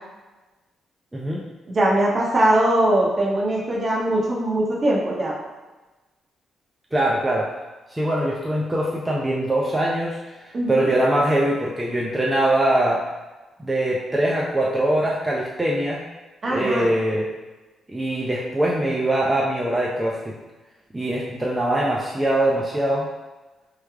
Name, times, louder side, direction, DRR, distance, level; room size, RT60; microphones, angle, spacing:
voice 1, 1.1-1.4 6.9-7.5 7.9-10.2 10.4-13.0 13.6-16.0 16.5-17.3 17.9-20.3 20.9-23.1, right 1 dB, 15° right, -4 dB, 0.6 m, -22 dB
voice 2, 1.7-5.4 10.5-10.9 16.4-16.9, right 1 dB, 45° right, -3 dB, 0.9 m, -21 dB
3.3 x 2.2 x 3.5 m, 1.2 s
supercardioid pair, 65°, 0 cm